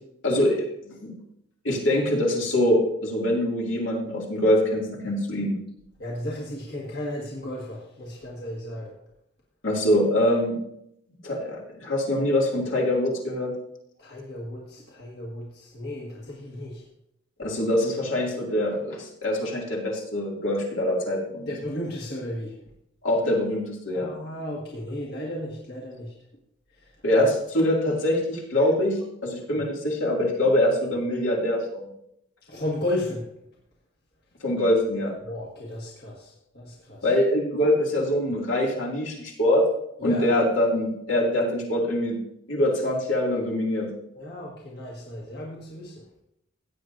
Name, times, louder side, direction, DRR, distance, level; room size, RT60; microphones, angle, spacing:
voice 1, 0.2-1.2 1.6-5.6 9.6-10.6 11.2-13.5 17.4-21.5 23.0-24.1 27.0-31.9 34.4-35.1 37.0-39.7 40.0-42.2 42.5-43.9, left 1 dB, 75° left, -2 dB, 2.4 m, -24 dB
voice 2, 6.0-8.9 14.0-16.8 21.5-22.6 23.9-26.1 27.2-27.3 29.6-29.7 32.5-33.3 35.2-37.1 40.0-40.3 44.1-46.2, left 1 dB, 50° left, -3 dB, 1.6 m, -34 dB
16.0 x 8.6 x 2.6 m, 0.77 s
head